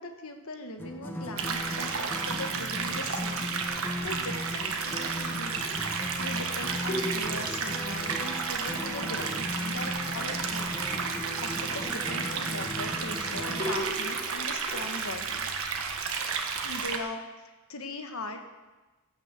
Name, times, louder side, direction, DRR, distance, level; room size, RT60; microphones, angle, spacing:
voice 1, 0.0-11.1 11.4-15.5 16.6-17.2 17.7-18.4, left 2 dB, 70° left, 5 dB, 1.5 m, -40 dB
sound 1, 0.8-13.9, left 1 dB, 10° left, 1.1 m, -38 dB
sound 2, 1.4-17.0, right 5 dB, 65° right, 1.4 m, -32 dB
sound 3, 5.5-6.4 6.9-8.9 9.2-12.2 13.6-15.3, equal, 35° left, 4.4 m, -40 dB
15.5 x 6.6 x 7.5 m, 1.2 s
head